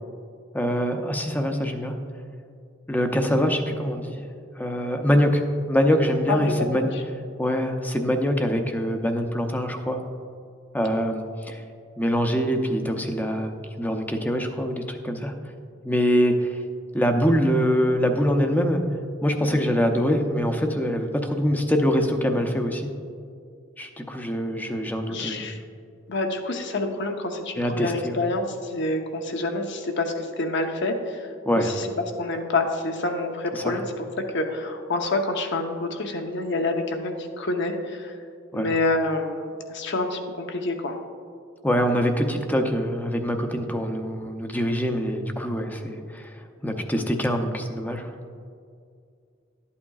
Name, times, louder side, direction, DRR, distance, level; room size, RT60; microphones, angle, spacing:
voice 1, 0.5-2.0 2.9-4.2 4.6-5.4 5.7-6.9 7.4-10.0 10.7-11.6 12.0-15.3 15.8-16.6 16.9-18.8 19.2-22.9 23.8-25.5 27.6-28.2 31.4-31.7 33.5-33.8 38.5-38.7 41.6-46.3 46.6-48.1, equal, 10° left, 5 dB, 0.6 m, -24 dB
voice 2, 6.3-6.7 25.1-25.6 26.1-31.2 31.5-31.9 32.2-34.0 34.3-38.1 38.5-41.0, left 2 dB, 60° left, 4 dB, 0.8 m, -27 dB
12.5 x 8.4 x 2.4 m, 2.3 s
head